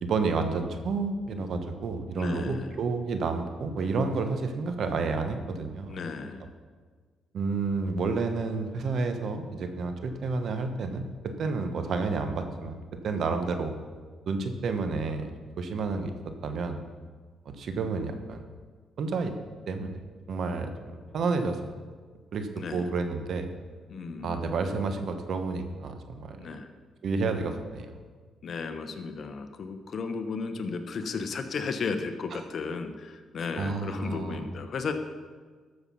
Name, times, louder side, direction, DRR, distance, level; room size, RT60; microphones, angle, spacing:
voice 1, 0.0-5.9 7.3-13.7 14.3-15.3 15.6-16.1 16.4-16.8 17.4-18.4 19.0-19.3 19.7-20.0 20.3-20.7 21.1-21.6 22.3-23.5 24.2-26.5 27.0-27.9 32.3-32.4 33.6-34.5, right 4 dB, 60° right, 7 dB, 1.2 m, -30 dB
voice 2, 2.2-2.7 5.9-6.5 22.6-22.9 23.9-24.4 26.4-26.7 28.4-34.9, left 4 dB, 55° left, 7 dB, 1.1 m, -34 dB
13.0 x 6.8 x 5.6 m, 1.5 s
cardioid pair, 90°, 0 cm